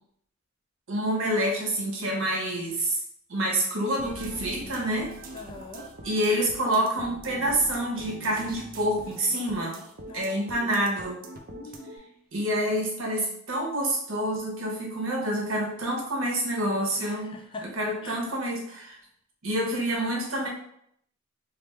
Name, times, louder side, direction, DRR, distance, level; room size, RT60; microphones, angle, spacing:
voice 1, 0.9-3.0 3.3-5.1 6.0-9.8 10.1-11.2 12.3-17.3 17.8-19.0 19.4-20.5, right 1 dB, 80° right, -2 dB, 0.9 m, -27 dB
sound 1, 4.0-12.0, right 1 dB, 45° right, 0.4 m, -43 dB
voice 2, 5.3-5.9 10.1-10.7 11.5-12.1 17.0-17.7 18.0-18.2, left 3 dB, 25° left, 3 dB, 0.3 m, -43 dB
3.3 x 2.1 x 3.1 m, 0.70 s
head